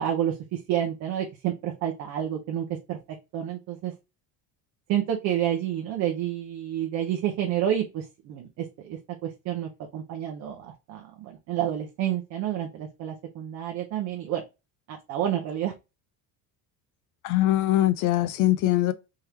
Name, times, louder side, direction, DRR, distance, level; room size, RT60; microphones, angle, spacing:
voice 1, 0.0-3.0 3.3-3.9 4.9-14.4 14.9-15.7, right 10 dB, 45° right, 0.7 m, -29 dB
voice 2, 17.2-18.9, left 15 dB, 55° left, 0.4 m, -22 dB
3.7 x 3.0 x 3.1 m
cardioid pair, 165°, 38 cm